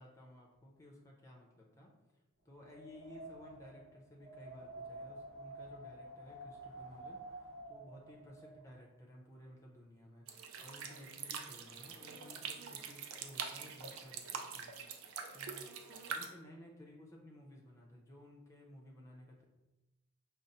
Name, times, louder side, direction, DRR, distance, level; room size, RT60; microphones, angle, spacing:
voice 1, 0.0-1.9 2.4-7.2 7.7-10.2 10.6-14.7 15.3-15.7 16.1-19.4, equal, 15° left, -1 dB, 0.6 m, -56 dB
Wind, 2.6-8.6, right 2 dB, 55° right, 1.3 m, -50 dB
sound 1, 10.3-16.3, right 6 dB, 75° right, 0.4 m, -44 dB
5.1 x 2.0 x 4.1 m, 1.0 s
head